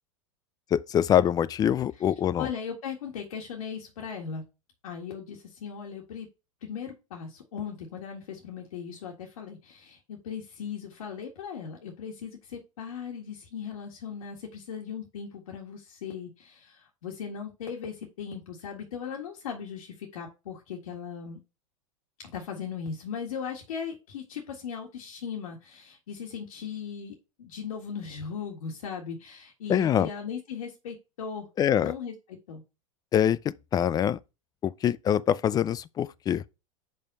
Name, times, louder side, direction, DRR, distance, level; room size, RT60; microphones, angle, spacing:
voice 1, 0.7-2.5 29.7-30.1 31.6-31.9 33.1-34.2 34.6-36.4, left 9 dB, 20° left, 0.3 m, -24 dB
voice 2, 2.4-4.4 4.8-6.3 6.6-21.4 22.2-31.5 31.8-32.6, left 7 dB, 85° left, 1.7 m, -38 dB
5.4 x 4.4 x 5.3 m
hypercardioid pair, 115°, 17 cm